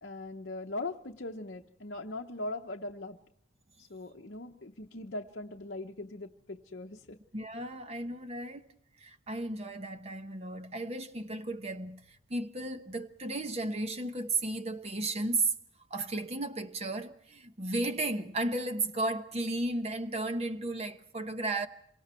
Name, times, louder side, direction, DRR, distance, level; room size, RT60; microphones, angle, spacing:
voice 1, 0.0-3.2 3.8-7.2, left 2 dB, 55° left, 0.9 m, -40 dB
voice 2, 7.3-8.6 9.0-15.5 15.9-21.7, right 2 dB, 30° right, 1.0 m, -34 dB
27.0 x 24.5 x 4.5 m
head